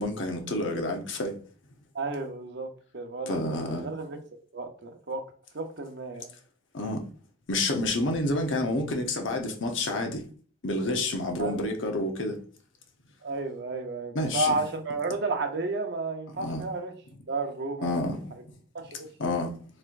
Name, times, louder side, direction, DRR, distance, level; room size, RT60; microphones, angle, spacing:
voice 1, 0.0-1.4 3.3-3.8 6.7-7.0 7.5-10.2 10.6-12.4 14.1-14.6 16.4-16.6 17.8-18.3 19.2-19.5, left 2 dB, 85° left, 0.9 m, -29 dB
voice 2, 1.9-4.2 4.5-5.2 5.5-6.3 11.4-11.6 13.2-16.9 17.3-18.1 18.7-19.1, right 2 dB, 65° right, 0.8 m, -32 dB
4.3 x 4.3 x 2.6 m
head